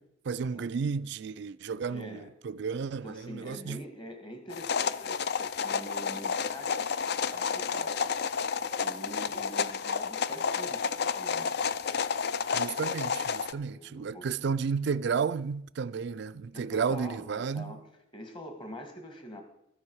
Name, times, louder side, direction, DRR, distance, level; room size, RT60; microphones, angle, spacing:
voice 1, 0.3-3.8 12.5-17.8, right 5 dB, 60° right, 0.4 m, -32 dB
voice 2, 1.9-2.3 3.0-11.6 13.7-14.3 16.5-17.8 18.1-19.4, equal, 25° left, 1.7 m, -45 dB
sound 1, 4.5-13.5, left 6 dB, 55° left, 0.5 m, -31 dB
13.5 x 9.9 x 4.7 m
head